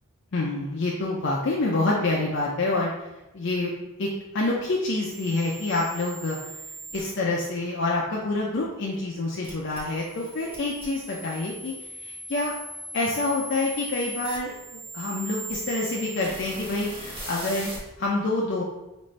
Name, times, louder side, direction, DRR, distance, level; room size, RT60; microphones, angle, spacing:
voice 1, 0.3-3.1 3.3-3.7 4.0-6.4 6.9-12.5 12.9-17.7 18.0-18.6, left 2 dB, 55° left, -3 dB, 0.5 m, -27 dB
sound 1, 5.1-7.0 9.4-17.8, right 1 dB, 25° right, 1.0 m, -39 dB
5.2 x 2.6 x 3.1 m, 0.99 s
head